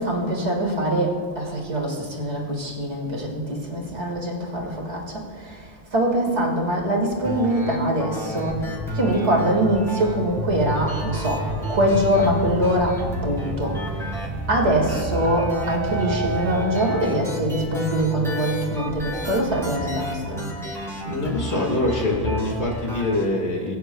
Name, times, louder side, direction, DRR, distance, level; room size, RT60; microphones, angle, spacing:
voice 1, 0.0-14.1 14.5-20.5, right 1 dB, 85° right, -1 dB, 2.3 m, -23 dB
sound 1, 7.2-23.2, left 1 dB, ahead, 2.8 m, -31 dB
sound 2, 10.1-21.1, right 1 dB, 55° right, 1.7 m, -35 dB
sound 3, 11.1-11.7 13.6-17.0, right 5 dB, 30° right, 1.4 m, -32 dB
voice 2, 21.1-23.8, left 2 dB, 75° left, 0 dB, 2.1 m, -24 dB
21.0 x 9.3 x 2.2 m, 2.1 s
omnidirectional pair, 1.1 m